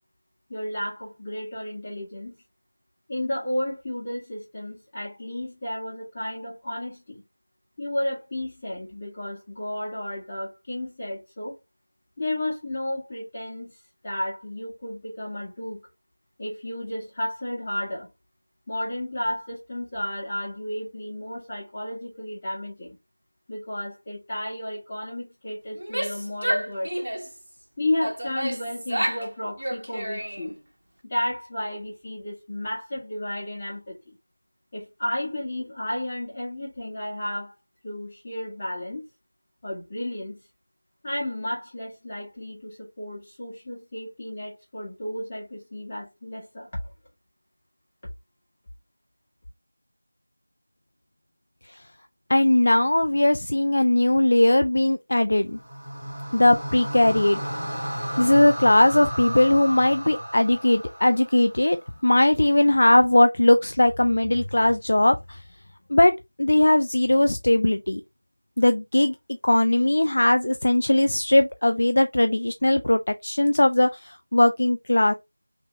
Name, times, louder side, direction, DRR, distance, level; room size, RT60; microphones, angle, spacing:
voice 1, 0.5-2.3 3.1-7.2 7.8-11.5 12.2-13.7 14.0-15.9 16.4-18.1 18.7-22.9 23.5-26.9 27.8-30.5 31.0-34.1 34.7-37.5 37.8-39.0 39.6-40.4 41.0-46.7, left 1 dB, 15° left, 1.6 m, -32 dB
Female speech woman speaking / Yell, 25.7-27.4 28.0-29.3 29.6-30.6, right 1 dB, 55° right, 1.1 m, -30 dB
voice 2, 52.3-55.6 56.3-57.4 58.2-65.4 65.9-66.1 66.4-68.0 68.6-69.1 69.4-75.1, left 1 dB, 40° left, 0.4 m, -19 dB
sound 1, 55.5-61.8, equal, 20° right, 1.4 m, -33 dB
3.3 x 2.9 x 3.4 m
figure-of-eight pair, 175°, 0 cm